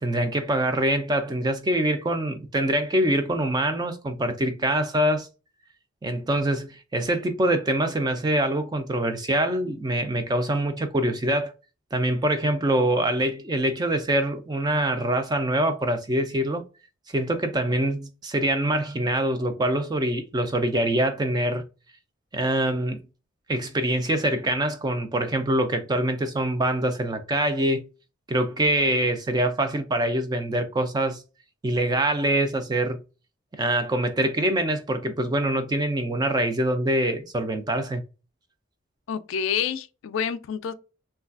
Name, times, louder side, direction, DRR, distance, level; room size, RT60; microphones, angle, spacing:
voice 1, 0.0-5.3 6.0-11.5 11.9-16.6 17.1-21.6 22.3-23.0 23.5-27.9 28.3-31.2 31.6-33.0 33.5-38.0, right 1 dB, 20° right, 0.3 m, -24 dB
voice 2, 39.1-40.7, left 7 dB, 70° left, 0.3 m, -28 dB
3.2 x 2.3 x 2.4 m
head